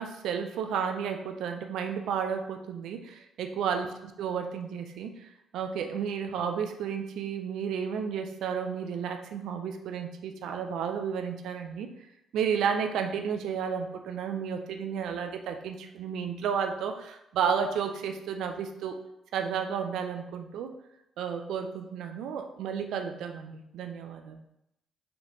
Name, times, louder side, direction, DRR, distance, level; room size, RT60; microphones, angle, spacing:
voice 1, 0.0-11.9 12.3-19.0 19.3-20.7 21.2-24.4, right 7 dB, 80° right, 6 dB, 0.4 m, -32 dB
4.9 x 3.0 x 3.4 m, 0.83 s
cardioid pair, 90°, 0 cm